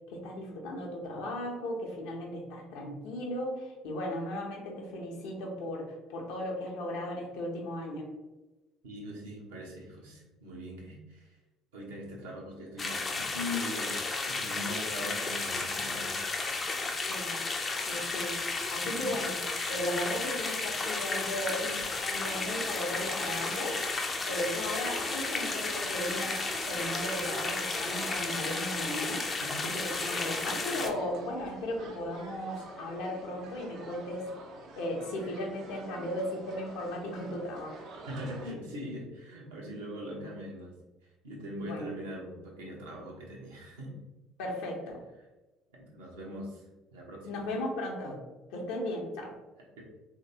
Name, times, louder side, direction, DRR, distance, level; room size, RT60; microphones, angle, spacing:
voice 1, 0.1-8.1 17.1-17.4 17.9-18.3 18.7-19.4 19.7-23.8 24.2-26.3 26.6-29.2 29.5-34.3 34.8-37.8 41.6-41.9 44.4-45.0 47.3-48.2 48.5-49.4, left 1 dB, 60° left, 0 dB, 0.7 m, -36 dB
voice 2, 8.8-11.4 11.7-16.2 18.8-19.1 29.4-29.8 30.7-30.8 38.1-40.7 41.2-44.0 45.7-46.6 46.9-47.5 49.8-49.9, left 1 dB, 70° right, -3 dB, 0.8 m, -41 dB
sound 1, 12.8-30.9, left 3 dB, 30° left, 0.5 m, -33 dB
sound 2, 22.2-38.5, right 2 dB, 55° right, 0.5 m, -46 dB
3.2 x 2.8 x 2.7 m, 1.1 s
figure-of-eight pair, 55°, 0 cm